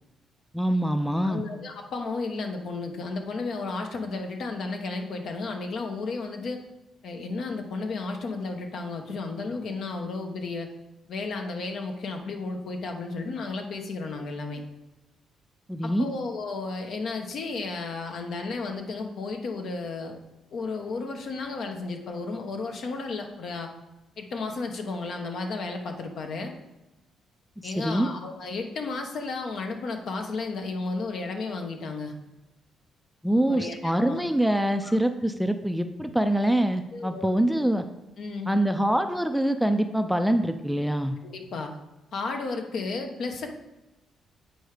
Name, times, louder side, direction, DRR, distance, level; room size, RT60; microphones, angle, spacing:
voice 1, 0.5-1.4 15.7-16.1 27.6-28.1 33.2-37.8 38.5-41.2, right 1 dB, ahead, 8 dB, 0.5 m, -24 dB
voice 2, 1.2-6.6 7.0-10.7 11.1-14.6 15.8-20.2 20.5-23.7 24.2-26.5 27.6-32.1 33.5-34.3 34.8-34.9 36.9-37.3 38.2-38.5 41.2-41.7 42.1-43.5, left 3 dB, 65° left, 4 dB, 1.1 m, -33 dB
7.9 x 4.6 x 5.0 m, 1.0 s
cardioid pair, 90°, 0 cm